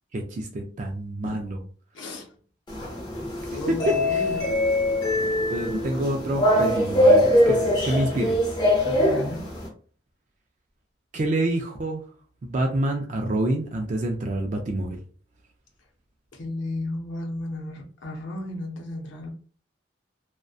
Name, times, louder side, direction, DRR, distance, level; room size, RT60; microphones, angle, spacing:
voice 1, 0.1-1.6 3.7-4.0 5.5-8.4 11.1-12.0 12.4-15.0, right 1 dB, 40° right, 2 dB, 0.3 m, -27 dB
voice 2, 1.9-2.3 3.5-4.5 8.8-9.5 16.3-19.3, left 1 dB, 90° left, 1 dB, 0.6 m, -34 dB
sound 1, 2.7-9.7, left 1 dB, 25° left, 0.6 m, -22 dB
2.5 x 2.1 x 2.3 m, 0.43 s
head